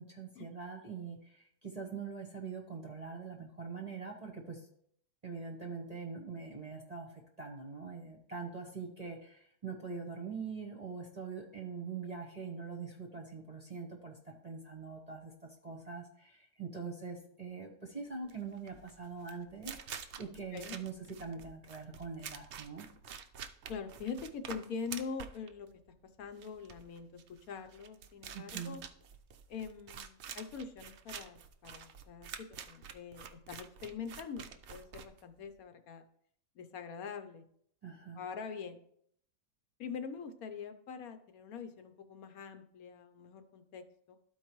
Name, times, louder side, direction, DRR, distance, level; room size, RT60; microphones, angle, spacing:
voice 1, 0.0-4.7 5.2-20.9 21.2-22.8 28.3-28.8 37.8-38.2, right 5 dB, 30° right, 0 dB, 0.9 m, -43 dB
sound 1, 18.2-35.6, right 7 dB, 65° right, 0.7 m, -48 dB
voice 2, 23.7-28.8 29.5-36.0 36.6-37.4 38.1-38.8 39.8-44.2, left 6 dB, 65° left, 8 dB, 1.1 m, -44 dB
13.0 x 4.6 x 3.0 m, 0.67 s
omnidirectional pair, 1.7 m